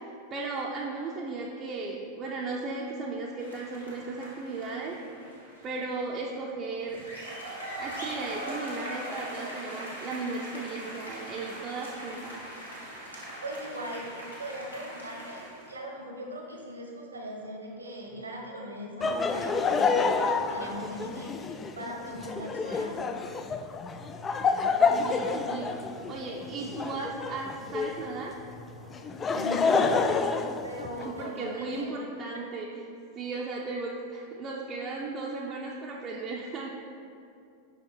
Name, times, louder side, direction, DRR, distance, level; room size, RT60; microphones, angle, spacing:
voice 1, 0.3-5.0 5.6-7.0 7.8-12.4 24.9-28.4 31.0-32.7 33.1-36.7, right 3 dB, 30° right, -4 dB, 0.6 m, -36 dB
sound 1, 3.4-5.8 6.8-15.7, right 1 dB, 80° left, 1.3 m, -41 dB
voice 2, 13.4-14.1 14.4-23.0 29.3-29.9 30.6-32.0, equal, 75° right, 0 dB, 1.1 m, -39 dB
Laughter, 19.0-28.1 28.9-31.3, left 4 dB, 20° left, 0.3 m, -28 dB
sound 2, 23.1-30.6, left 2 dB, 55° left, 1.2 m, -50 dB
6.1 x 5.3 x 4.5 m, 2.5 s
figure-of-eight pair, 90°, 0 cm